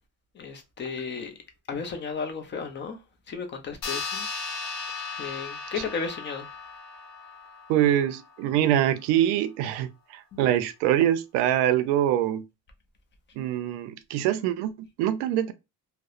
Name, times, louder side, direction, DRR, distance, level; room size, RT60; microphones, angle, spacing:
voice 1, 0.4-1.3 1.7-3.0 3.3-4.3 5.2-6.5 10.3-10.5, left 5 dB, 30° left, 0.4 m, -34 dB
sound 1, 3.8-8.7, left 4 dB, 60° left, 0.9 m, -37 dB
voice 2, 7.7-12.4 13.4-15.5, right 11 dB, 80° right, 0.5 m, -24 dB
2.8 x 2.0 x 2.3 m
cardioid pair, 125°, 40 cm